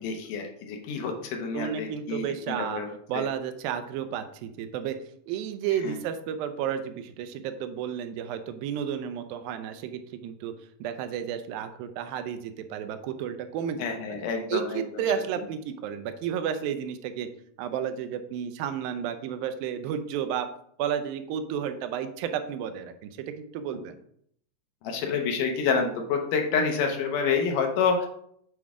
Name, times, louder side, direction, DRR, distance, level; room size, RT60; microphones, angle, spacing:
voice 1, 0.0-3.2 5.8-6.0 13.8-14.8 24.8-28.1, left 5 dB, 75° left, 4 dB, 2.3 m, -28 dB
voice 2, 1.5-2.8 3.1-5.0 5.3-10.5 10.8-14.2 14.5-17.3 17.6-20.5 20.8-24.0, right 8 dB, 90° right, 9 dB, 2.4 m, -32 dB
8.2 x 4.6 x 3.6 m, 0.68 s
omnidirectional pair, 4.0 m